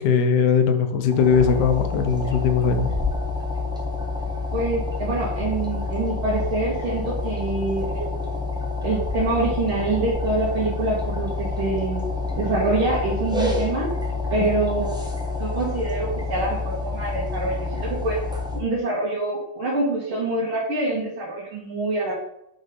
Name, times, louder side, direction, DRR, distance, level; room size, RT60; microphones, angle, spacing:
voice 1, 0.0-2.9, left 6 dB, 65° left, 7 dB, 1.2 m, -20 dB
sound 1, 1.1-18.6, left 3 dB, 5° right, 0.4 m, -28 dB
voice 2, 4.5-8.2 8.8-12.0 12.4-13.9 14.3-15.0 15.4-18.2 18.5-22.1, right 2 dB, 85° right, -6 dB, 2.4 m, -25 dB
6.1 x 4.0 x 5.1 m, 0.82 s
omnidirectional pair, 2.2 m